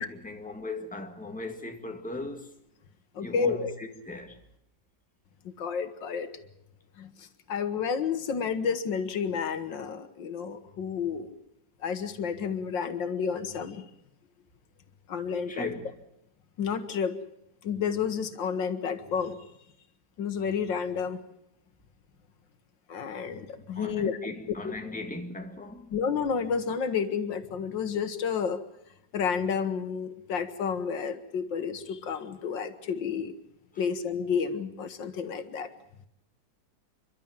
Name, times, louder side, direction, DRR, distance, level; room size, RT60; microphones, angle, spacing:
voice 1, 0.0-2.5 3.2-4.4 15.5-15.9 23.7-25.9 33.7-33.8, left 2 dB, 5° left, 1.8 m, -38 dB
voice 2, 3.2-3.7 5.4-6.3 7.0-11.3 11.8-13.9 15.1-15.7 16.6-17.1 17.6-19.4 20.2-21.2 22.9-24.2 24.6-24.7 25.9-28.6 29.1-33.3 33.8-35.7, left 6 dB, 85° left, 2.0 m, -30 dB
29.0 x 12.0 x 8.9 m
omnidirectional pair, 2.0 m